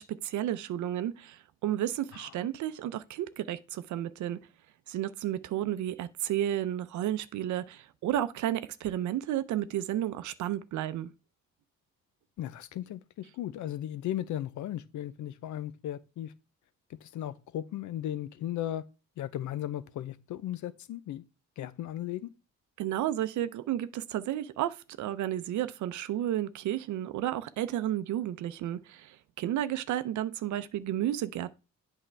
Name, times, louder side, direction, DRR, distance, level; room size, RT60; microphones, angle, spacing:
voice 1, 0.0-4.4 4.9-11.1 22.8-31.6, right 12 dB, 75° right, 0.6 m, -32 dB
voice 2, 12.4-16.3 16.9-18.8 19.2-21.2 21.6-22.3, left 12 dB, 75° left, 0.7 m, -36 dB
8.2 x 5.7 x 3.3 m
cardioid pair, 90°, 30 cm